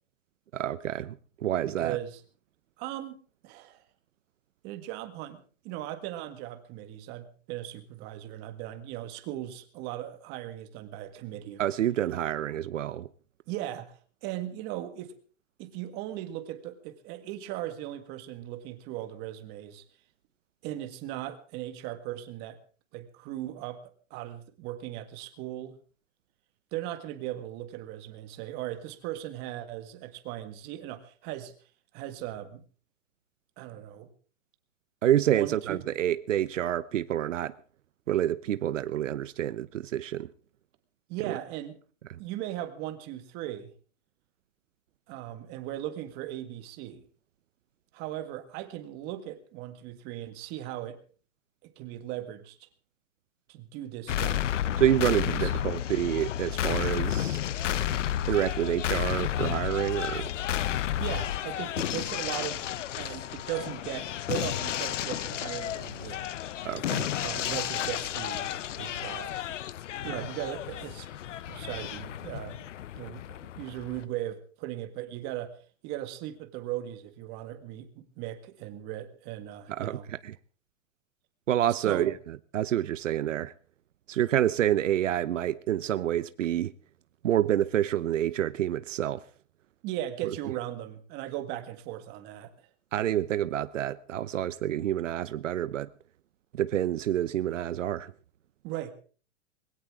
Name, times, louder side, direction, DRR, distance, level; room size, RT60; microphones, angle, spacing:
voice 1, 0.5-2.0 11.6-13.1 35.0-37.5 38.1-40.3 41.3-41.4 54.8-57.4 58.3-60.3 66.6-67.1 79.7-80.4 81.5-83.5 84.1-86.7 87.2-89.2 90.2-90.3 92.9-95.9 96.5-98.1, right 11 dB, 75° right, 0.9 m, -28 dB
voice 2, 1.6-2.2 2.8-3.2 3.4-3.8 4.6-11.6 13.5-13.9 14.2-15.2 15.6-19.8 20.6-22.6 22.9-23.8 24.1-25.8 26.7-31.5 31.9-32.6 33.6-34.1 35.3-35.8 41.1-41.8 42.2-43.7 45.1-47.0 47.9-51.0 51.6-52.7 53.5-54.5 55.1-55.6 61.0-62.7 63.0-66.2 67.2-68.5 68.8-69.4 70.0-71.1 71.5-72.7 73.0-80.1 81.9-82.2 89.8-92.5 98.6-98.9, right 13 dB, 25° right, 1.7 m, -38 dB
sound 1, 54.1-74.0, left 11 dB, 70° left, 0.9 m, -32 dB
21.0 x 17.0 x 3.7 m
hypercardioid pair, 160°, 38 cm